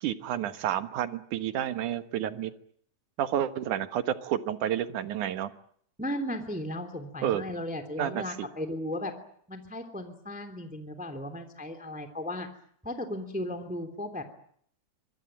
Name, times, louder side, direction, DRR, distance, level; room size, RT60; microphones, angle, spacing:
voice 1, 0.0-2.5 3.2-5.5 7.2-7.4 8.0-8.5, right 10 dB, 80° right, 10 dB, 2.9 m, -30 dB
voice 2, 6.0-9.1 9.5-12.5 12.8-14.2, left 1 dB, 5° right, 7 dB, 2.6 m, -35 dB
25.5 x 22.5 x 8.9 m, 0.64 s
omnidirectional pair, 3.5 m